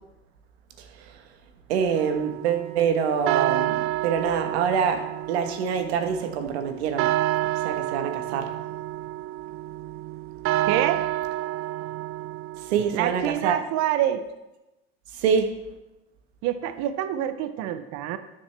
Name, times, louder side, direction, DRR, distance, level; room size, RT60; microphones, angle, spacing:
voice 1, 1.7-7.1 7.6-8.5 12.7-13.6 15.2-15.5, right 7 dB, 80° right, 7 dB, 1.2 m, -25 dB
sound 1, 2.0-13.1, right 15 dB, 45° right, 0.4 m, -29 dB
voice 2, 10.7-11.0 12.9-14.2 16.4-18.2, right 11 dB, 60° right, 11 dB, 0.8 m, -26 dB
12.5 x 7.5 x 3.4 m, 1.0 s
hypercardioid pair, 85°, 32 cm